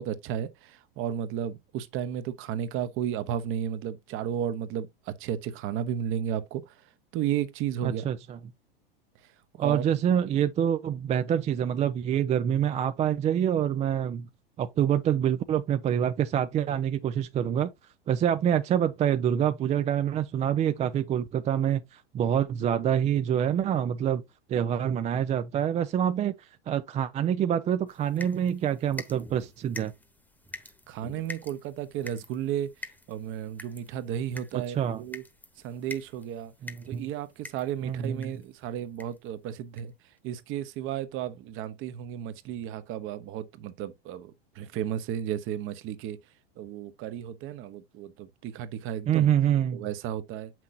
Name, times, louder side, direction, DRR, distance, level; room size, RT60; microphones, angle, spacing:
voice 1, 0.0-6.7 7.1-8.1 9.6-9.9 30.9-32.7 33.1-35.2 35.6-36.5 36.9-39.9 40.2-46.2 46.6-49.3 49.7-50.5, right 10 dB, 45° right, 1.0 m, -33 dB
voice 2, 7.8-8.4 9.6-14.3 14.6-17.7 18.1-24.2 24.5-29.9 34.5-35.0 36.6-37.1 37.8-38.3 49.1-49.8, right 9 dB, 25° right, 0.4 m, -26 dB
sound 1, 27.9-38.5 39.0-39.3 39.8-39.9 40.2-40.3, left 2 dB, 5° left, 1.2 m, -46 dB
7.3 x 6.0 x 2.6 m
hypercardioid pair, 110°, 30 cm